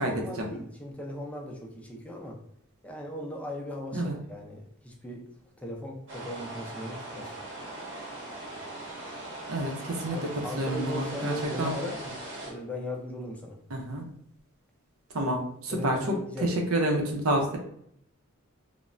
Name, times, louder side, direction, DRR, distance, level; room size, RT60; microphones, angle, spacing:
voice 1, 0.0-2.4 2.8-5.3 5.6-7.3 10.1-12.0 12.4-13.6 15.7-16.5, left 1 dB, 5° left, -1 dB, 0.5 m, -38 dB
sound 1, 6.1-12.5, right 2 dB, 60° right, 0.9 m, -40 dB
voice 2, 9.5-11.7 13.7-14.0 15.1-16.1 16.4-17.6, right 1 dB, 90° right, 2 dB, 0.6 m, -29 dB
3.1 x 2.1 x 2.4 m, 0.70 s
head